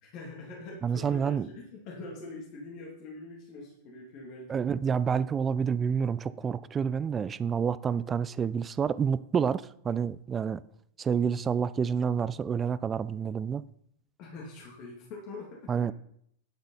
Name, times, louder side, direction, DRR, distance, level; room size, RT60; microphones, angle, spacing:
voice 1, 0.0-4.6 14.2-15.8, left 3 dB, 40° left, 2.9 m, -44 dB
voice 2, 0.8-1.5 4.5-10.6 11.0-13.6 15.7-15.9, right 7 dB, 20° right, 0.5 m, -28 dB
10.5 x 7.6 x 5.6 m
figure-of-eight pair, 90°, 0 cm